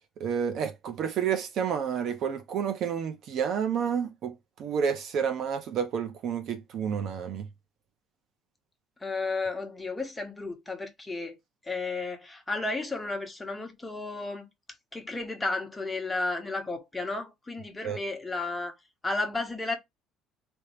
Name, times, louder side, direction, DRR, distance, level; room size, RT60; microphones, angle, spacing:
voice 1, 0.2-7.5 17.8-18.0, right 7 dB, 55° right, 0.9 m, -30 dB
voice 2, 9.0-11.4 11.7-14.5 14.9-18.7 19.0-19.8, left 3 dB, 10° left, 1.2 m, -33 dB
3.6 x 3.0 x 4.4 m
cardioid pair, 135°, 0 cm